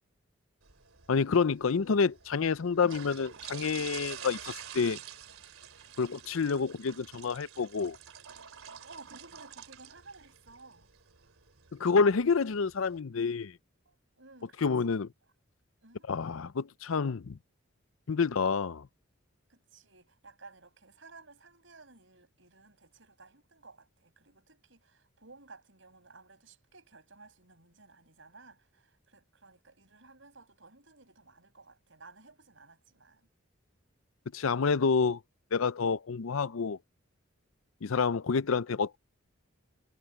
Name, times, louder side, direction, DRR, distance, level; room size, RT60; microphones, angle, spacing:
sound 1, 0.6-13.0, right 9 dB, 90° right, 2.9 m, -48 dB
voice 1, 1.1-5.0 6.0-8.0 11.7-13.5 14.6-15.1 16.1-17.4 18.1-18.9 34.3-35.2 35.5-36.8 37.8-39.0, left 5 dB, 80° left, 0.5 m, -28 dB
voice 2, 8.8-10.9 11.2-11.3 13.9-15.0 15.8-16.1 18.2-18.3 19.5-33.3, right 3 dB, 65° right, 6.0 m, -56 dB
head